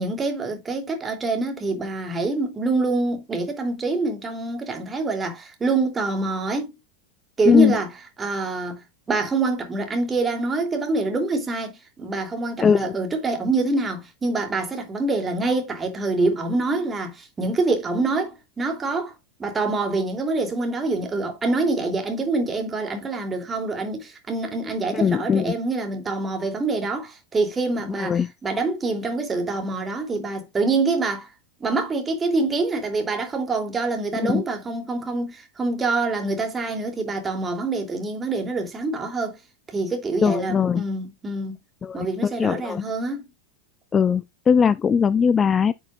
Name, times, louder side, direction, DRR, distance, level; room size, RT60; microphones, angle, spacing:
voice 1, 0.0-6.7 7.4-7.9 8.2-8.8 9.1-19.1 19.4-31.3 31.6-39.4 39.7-41.6 41.9-43.2, right 3 dB, 15° right, 3.0 m, -25 dB
voice 2, 12.6-12.9 24.9-25.6 28.0-28.3 34.1-34.4 40.2-40.8 41.8-42.8 43.9-45.7, left 6 dB, 20° left, 0.4 m, -20 dB
10.5 x 6.3 x 2.5 m
figure-of-eight pair, 90°, 0 cm